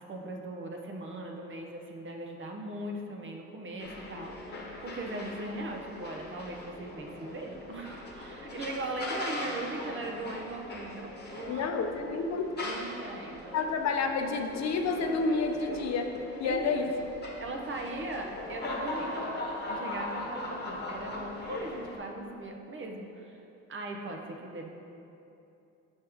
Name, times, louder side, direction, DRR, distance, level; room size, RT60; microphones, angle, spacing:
voice 1, 0.0-11.7 12.0-12.3 12.6-13.6 16.4-16.9 17.4-19.1 19.7-23.4 23.7-24.7, right 2 dB, 40° right, 2 dB, 0.8 m, -39 dB
sound 1, 3.8-22.0, left 2 dB, 35° left, 1.2 m, -40 dB
voice 2, 11.5-12.7 13.5-16.1 16.4-16.9, left 4 dB, 60° left, 4 dB, 0.6 m, -29 dB
7.2 x 5.3 x 3.4 m, 2.8 s
cardioid pair, 90°, 30 cm